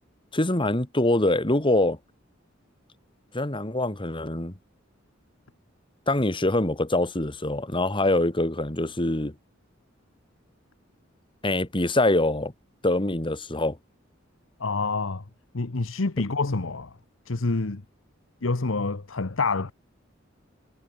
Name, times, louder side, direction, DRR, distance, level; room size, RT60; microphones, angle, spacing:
voice 1, 0.3-2.0 3.3-4.5 6.1-9.3 11.4-12.5 12.8-13.8, left 2 dB, 25° left, 2.2 m, -24 dB
voice 2, 14.6-15.2 15.5-16.9 17.3-17.8 18.4-19.7, left 3 dB, 85° left, 1.1 m, -27 dB
head